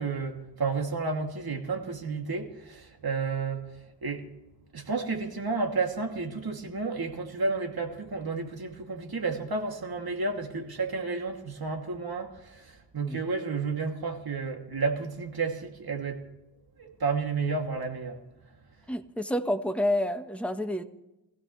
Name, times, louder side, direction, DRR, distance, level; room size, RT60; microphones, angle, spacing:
voice 1, 0.0-3.7 4.0-4.2 4.7-16.2 16.8-18.2, right 4 dB, 55° right, 2.7 m, -31 dB
voice 2, 18.9-20.8, left 1 dB, 5° left, 1.3 m, -29 dB
24.0 x 16.0 x 3.3 m
cardioid pair, 65°, 44 cm